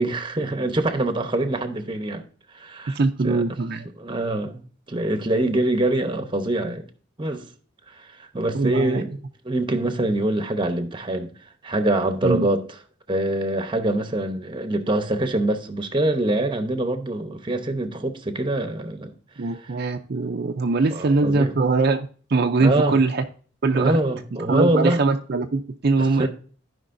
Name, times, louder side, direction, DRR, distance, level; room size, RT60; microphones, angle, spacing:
voice 1, 0.0-2.2 2.5-3.0 3.2-3.4 4.0-6.8 7.2-7.5 8.0-9.1 9.4-11.3 11.6-12.7 13.1-19.1 20.9-21.5 22.6-23.0 23.7-25.0 26.0-26.3, right 1 dB, 25° right, 0.9 m, -24 dB
voice 2, 2.9-3.9 8.5-9.0 12.2-12.5 19.4-23.2 23.6-24.0 24.5-26.3, right 3 dB, 55° right, 0.5 m, -22 dB
15.0 x 5.1 x 2.6 m
head